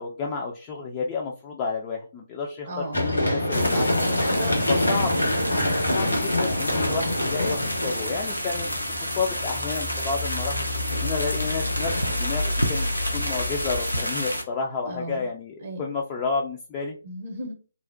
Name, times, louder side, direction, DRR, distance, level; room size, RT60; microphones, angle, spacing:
voice 1, 0.0-4.2 4.7-5.1 5.6-10.6 11.0-17.0, left 4 dB, 20° left, -1 dB, 0.3 m, -31 dB
voice 2, 2.7-3.0 4.2-5.0 14.8-15.3 15.6-15.8 17.0-17.5, right 1 dB, 40° right, 2 dB, 0.7 m, -35 dB
Run, 2.9-8.8 10.6-12.2, left 1 dB, 75° left, 1.2 m, -26 dB
sound 1, 3.5-14.4, equal, 90° left, 0.6 m, -30 dB
sound 2, 6.8-13.8, left 2 dB, 55° left, 0.8 m, -33 dB
2.5 x 2.0 x 2.4 m, 0.35 s
figure-of-eight pair, 140°, 0 cm